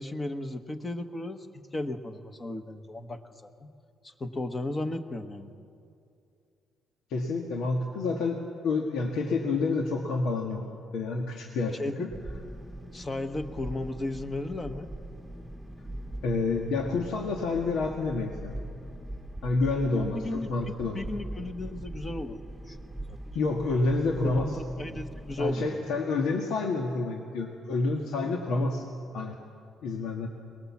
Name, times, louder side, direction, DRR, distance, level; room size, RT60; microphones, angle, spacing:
voice 1, 0.0-3.2 3.6-3.7 4.2-5.5 11.8-12.1 12.9-14.9 20.0-20.5 20.9-22.4 22.7-22.8 23.1-23.4 24.2-25.8 28.6-28.8, left 2 dB, 20° left, 7 dB, 1.2 m, -35 dB
voice 2, 7.1-8.4 8.6-10.6 10.9-12.1 16.2-18.5 19.4-21.0 23.4-24.6 25.4-28.9 29.1-29.4 29.8-30.3, left 3 dB, 85° left, 2 dB, 1.7 m, -28 dB
sound 1, 12.1-25.5, right 1 dB, 5° right, 1.2 m, -41 dB
23.0 x 20.5 x 7.3 m, 2.5 s
cardioid pair, 145°, 0 cm